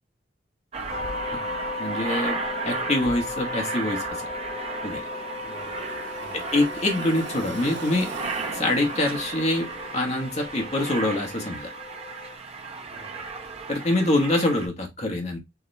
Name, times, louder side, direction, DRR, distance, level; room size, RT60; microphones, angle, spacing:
Aircraft, 0.7-14.7, right 4 dB, 35° right, 0.7 m, -35 dB
sound 1, 0.9-12.3, left 2 dB, 90° left, 2.3 m, -36 dB
voice 1, 1.8-2.4 2.6-4.3 4.8-5.0 6.3-8.1 8.5-9.7 9.9-11.7 13.7-15.4, left 1 dB, 35° left, 1.2 m, -25 dB
Car passing by / Traffic noise roadway noise, 4.8-11.7, right 3 dB, 70° right, 1.2 m, -41 dB
voice 2, 5.4-6.5 12.9-13.5, left 1 dB, 55° left, 2.6 m, -49 dB
4.8 x 3.0 x 3.1 m
head